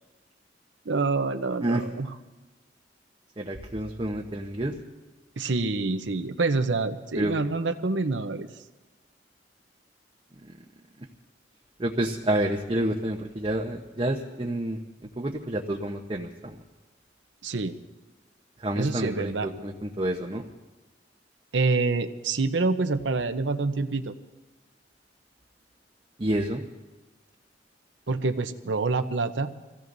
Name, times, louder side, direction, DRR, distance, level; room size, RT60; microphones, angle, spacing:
voice 1, 0.8-2.1 5.4-8.5 17.4-17.8 18.8-19.5 21.5-24.1 28.1-29.5, right 3 dB, 85° right, 8 dB, 0.8 m, -26 dB
voice 2, 3.4-4.7 7.1-7.3 10.4-10.5 11.8-16.6 18.6-20.4 26.2-26.6, right 1 dB, 30° right, 0 dB, 0.9 m, -29 dB
26.5 x 17.0 x 2.7 m, 1.2 s
head